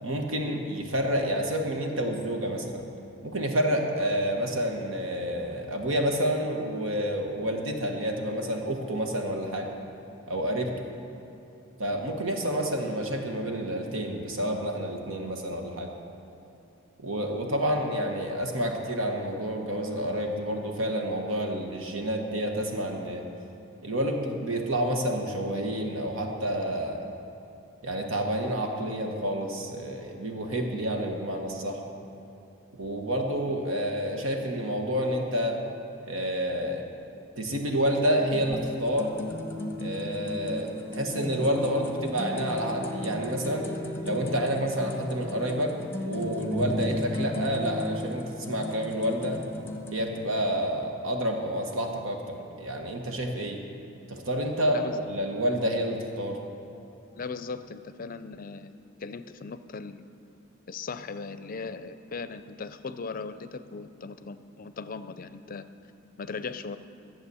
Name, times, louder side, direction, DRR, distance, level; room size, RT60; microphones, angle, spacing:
voice 1, 0.0-2.8 3.2-9.7 10.3-10.9 11.8-15.9 17.0-23.2 23.8-27.1 27.8-31.8 32.8-35.6 36.1-36.8 37.4-39.1 39.8-43.7 44.0-45.8 46.0-49.4 49.9-53.6 54.1-56.4, equal, 85° right, 2 dB, 1.4 m, -29 dB
sound 1, 38.3-50.0, left 1 dB, 10° left, 0.8 m, -35 dB
voice 2, 57.2-60.1 60.7-65.6 66.2-66.8, left 4 dB, 45° left, 12 dB, 0.5 m, -38 dB
12.5 x 7.9 x 6.9 m, 2.9 s
head